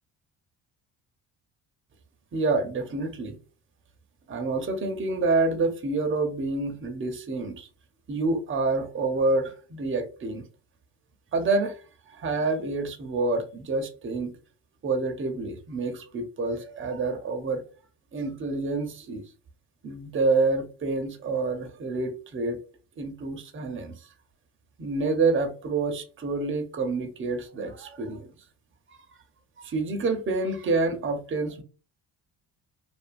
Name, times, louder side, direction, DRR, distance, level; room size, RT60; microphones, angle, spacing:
voice 1, 2.3-3.4 4.3-7.7 8.1-10.4 11.3-11.8 12.1-14.3 14.8-17.6 18.1-19.2 19.8-22.6 23.0-24.1 24.8-28.3 28.9-29.0 29.6-31.6, right 3 dB, 30° right, 0.6 m, -28 dB
2.5 x 2.4 x 2.5 m
supercardioid pair, 75°, 44 cm